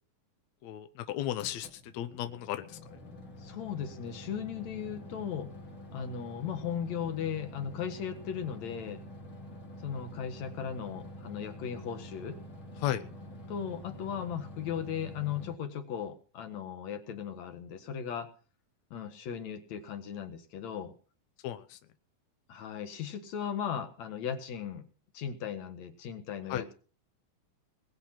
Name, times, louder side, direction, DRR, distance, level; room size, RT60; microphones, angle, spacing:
voice 1, 0.6-2.8 12.8-13.0 21.4-21.8 26.5-26.7, left 12 dB, 80° left, 10 dB, 1.6 m, -35 dB
sound 1, 1.4-15.6, left 1 dB, 35° left, 2.8 m, -47 dB
voice 2, 3.4-5.5 5.9-9.0 9.8-12.4 13.5-18.3 18.9-20.9 22.5-24.8 25.1-26.7, left 8 dB, 55° left, 9 dB, 2.4 m, -37 dB
21.0 x 8.0 x 5.8 m, 0.39 s
omnidirectional pair, 4.4 m